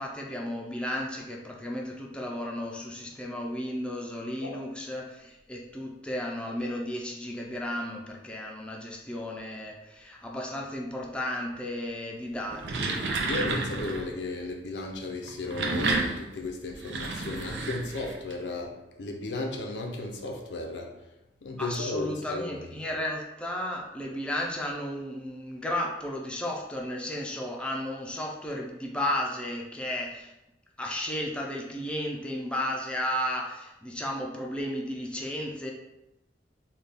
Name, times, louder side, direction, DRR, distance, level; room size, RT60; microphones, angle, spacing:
voice 1, 0.0-13.0 21.6-30.3 30.8-35.7, left 1 dB, 5° left, -2 dB, 0.4 m, -34 dB
sound 1, 12.4-14.1 15.2-18.3, right 3 dB, 90° right, 0.5 m, -31 dB
voice 2, 13.3-20.9 21.4-22.8, left 2 dB, 85° left, 2 dB, 0.6 m, -35 dB
4.0 x 2.3 x 3.4 m, 0.94 s
head